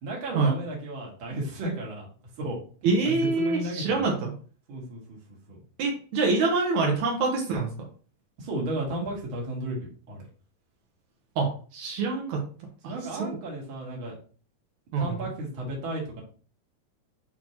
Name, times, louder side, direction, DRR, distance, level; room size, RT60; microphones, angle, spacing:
voice 1, 0.0-2.6 3.0-4.1 4.7-5.2 5.5-5.6 8.4-10.3 12.8-14.1 14.9-16.2, right 1 dB, 45° right, -3 dB, 1.9 m, -34 dB
voice 2, 2.8-4.3 5.8-7.7 11.3-12.4 12.8-12.9 13.2-13.3 14.9-15.0, right 4 dB, 90° right, 1 dB, 1.6 m, -25 dB
7.4 x 4.3 x 2.9 m, 0.40 s
omnidirectional pair, 4.8 m